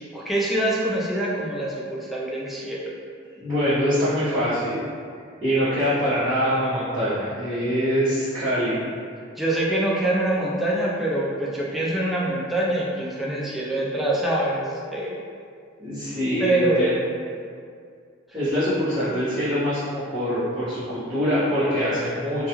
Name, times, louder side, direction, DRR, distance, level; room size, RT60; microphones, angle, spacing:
voice 1, 0.0-2.8 9.4-15.1 16.4-16.8, right 1 dB, ahead, -6 dB, 0.3 m, -25 dB
voice 2, 3.4-4.8 5.4-8.8 15.8-17.0 18.3-22.5, equal, 20° right, -19 dB, 0.9 m, -24 dB
2.3 x 2.3 x 2.9 m, 2.2 s
head